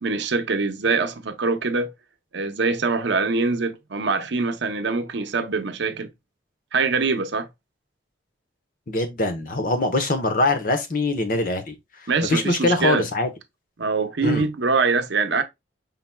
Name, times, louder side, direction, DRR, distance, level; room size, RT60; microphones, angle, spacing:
voice 1, 0.0-1.9 2.3-6.1 6.7-7.5 12.1-13.1 13.8-15.4, right 4 dB, 70° right, 0.7 m, -23 dB
voice 2, 8.9-11.7 12.3-13.3 14.2-14.4, left 2 dB, 45° left, 0.9 m, -23 dB
5.6 x 3.8 x 2.2 m
head